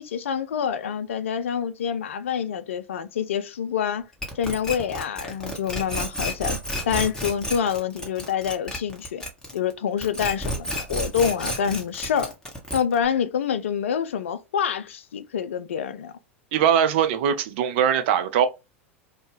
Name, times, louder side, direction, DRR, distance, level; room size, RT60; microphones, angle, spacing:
voice 1, 0.0-4.1 4.4-6.6 6.8-9.2 9.5-12.3 12.7-16.1, left 8 dB, 70° left, 0.4 m, -27 dB
sound 1, 4.2-9.7 10.0-13.1, equal, 10° left, 1.0 m, -31 dB
voice 2, 16.5-18.5, right 8 dB, 55° right, 0.5 m, -21 dB
2.7 x 2.2 x 3.2 m
figure-of-eight pair, 85°, 7 cm